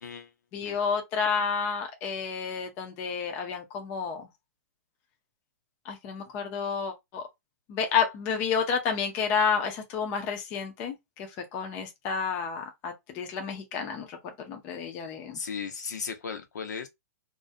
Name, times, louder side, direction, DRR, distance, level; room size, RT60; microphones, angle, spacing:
voice 1, 0.0-0.3 0.6-0.8 15.3-16.9, left 6 dB, 85° left, 0.7 m, -36 dB
voice 2, 0.5-4.3 5.9-7.2 7.7-14.2 14.5-15.4, left 6 dB, 15° left, 0.3 m, -30 dB
2.3 x 2.0 x 2.5 m
hypercardioid pair, 170°, 9 cm